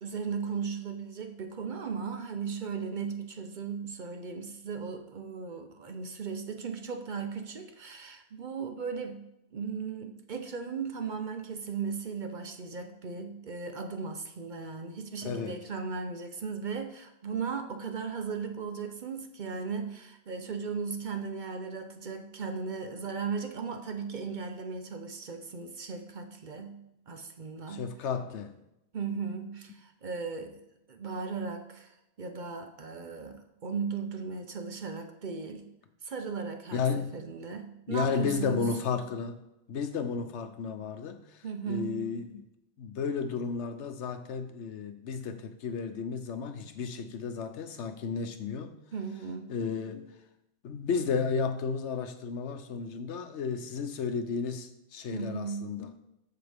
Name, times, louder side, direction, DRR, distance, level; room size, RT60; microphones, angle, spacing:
voice 1, 0.0-9.2 9.5-26.8 27.1-27.9 28.9-30.6 30.9-35.7 36.0-38.7 41.4-42.0 48.9-49.6 55.1-55.7, right 5 dB, 50° right, 0.7 m, -37 dB
voice 2, 15.2-15.6 27.7-28.5 36.7-37.1 37.9-39.4 39.7-42.4 42.8-48.7 49.5-50.1 50.6-56.0, left 5 dB, 80° left, 1.0 m, -33 dB
13.5 x 4.7 x 3.5 m
omnidirectional pair, 1.2 m